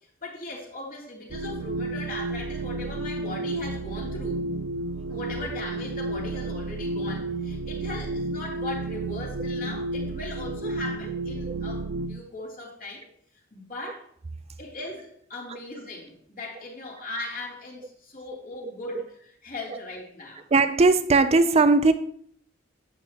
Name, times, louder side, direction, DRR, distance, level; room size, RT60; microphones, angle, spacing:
voice 1, 0.2-4.4 5.1-13.1 13.5-14.1 14.6-20.4, left 2 dB, 50° left, -2 dB, 3.2 m, -38 dB
sound 1, 1.3-12.2, right 2 dB, 90° right, 0.5 m, -31 dB
voice 2, 20.5-21.9, right 3 dB, 35° right, 10 dB, 0.5 m, -19 dB
11.5 x 9.1 x 2.9 m, 0.63 s
head